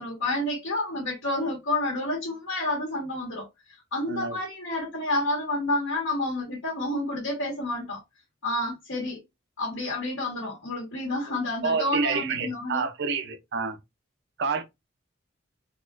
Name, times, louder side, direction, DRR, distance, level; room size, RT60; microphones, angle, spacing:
voice 1, 0.0-3.4 3.9-8.0 8.4-9.2 9.6-12.9, left 1 dB, 85° left, 1.6 m, -29 dB
voice 2, 11.6-13.8 14.4-14.6, right 4 dB, 60° right, 0.6 m, -28 dB
4.1 x 2.4 x 2.4 m
head